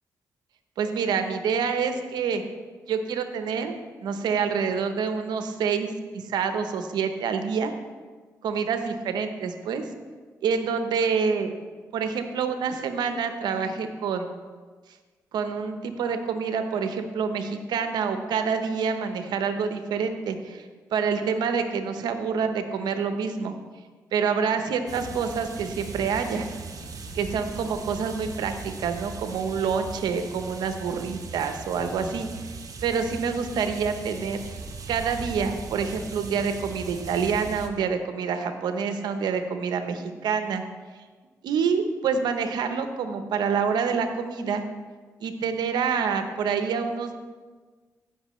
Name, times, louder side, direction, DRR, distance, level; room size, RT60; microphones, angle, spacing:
voice 1, 0.8-2.4 2.9-3.7 4.0-7.7 8.4-9.9 10.4-11.5 11.9-14.3 15.3-20.6 20.9-23.5 24.1-26.5 27.1-32.5 32.8-34.4 34.9-40.6 41.4-44.6 45.2-47.1, right 6 dB, 85° right, 8 dB, 0.8 m, -27 dB
sound 1, 24.9-37.7, right 4 dB, 55° right, 1.0 m, -39 dB
15.5 x 6.0 x 3.1 m, 1.4 s
supercardioid pair, 50°, 7 cm